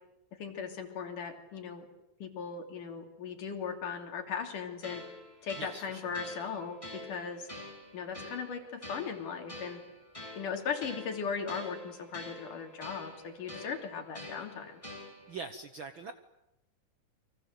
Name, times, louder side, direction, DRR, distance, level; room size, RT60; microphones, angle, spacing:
voice 1, 0.3-1.9 2.2-5.0 5.4-7.5 7.9-9.8 10.4-14.8, left 6 dB, 75° left, 4 dB, 4.6 m, -38 dB
sound 1, 4.8-15.4, left 1 dB, 10° left, 6.4 m, -47 dB
voice 2, 5.6-6.1 15.3-16.1, right 4 dB, 60° right, 9 dB, 1.3 m, -43 dB
29.5 x 24.0 x 8.1 m, 0.89 s
omnidirectional pair, 3.7 m